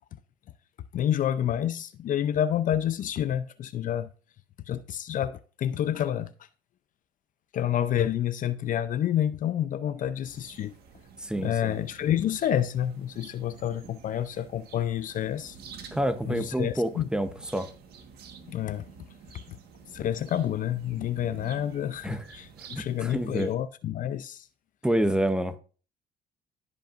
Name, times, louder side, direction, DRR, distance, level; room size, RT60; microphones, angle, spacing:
voice 1, 0.9-4.1 4.7-6.3 7.5-10.7 11.4-15.6 16.3-17.1 18.5-18.8 19.5-19.6 19.9-24.5, left 10 dB, 50° left, 0.5 m, -29 dB
sound 1, 10.2-23.5, right 6 dB, 70° right, 1.4 m, -49 dB
voice 2, 11.2-11.8 15.9-17.7 22.0-22.2 23.0-23.5 24.8-25.5, right 1 dB, 5° right, 0.8 m, -27 dB
15.5 x 5.4 x 2.5 m
cardioid pair, 110°, 17 cm